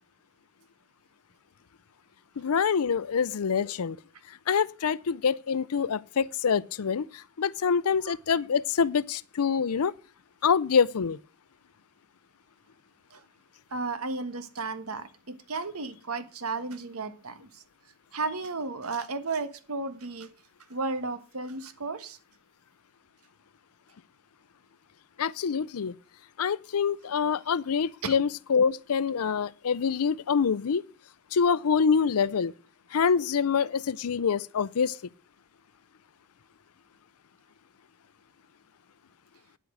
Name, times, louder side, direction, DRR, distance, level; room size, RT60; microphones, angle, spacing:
voice 1, 2.4-4.0 4.5-9.9 10.4-11.2 25.2-25.9 26.4-30.8 31.3-32.5 32.9-35.0, left 6 dB, 80° left, 0.5 m, -26 dB
voice 2, 13.7-17.6 18.1-20.3 20.7-22.2 28.0-28.1, right 3 dB, 75° right, 1.4 m, -34 dB
9.9 x 8.1 x 6.4 m
head